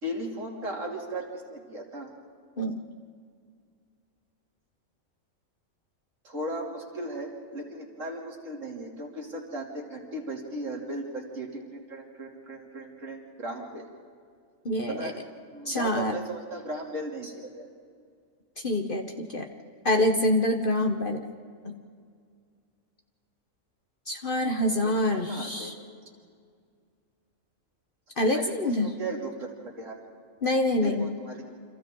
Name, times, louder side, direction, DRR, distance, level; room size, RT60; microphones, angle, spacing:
voice 1, 0.0-2.1 6.2-13.9 14.9-17.7 24.8-25.7 28.3-30.0 30.8-31.4, right 1 dB, 65° right, 0 dB, 3.3 m, -37 dB
voice 2, 14.6-15.1 15.7-16.2 18.6-19.5 19.8-21.3 21.6-21.8 24.1-25.7 28.2-28.9 30.4-31.1, left 1 dB, 40° left, 4 dB, 1.3 m, -26 dB
29.0 x 26.5 x 3.8 m, 2.2 s
omnidirectional pair, 1.4 m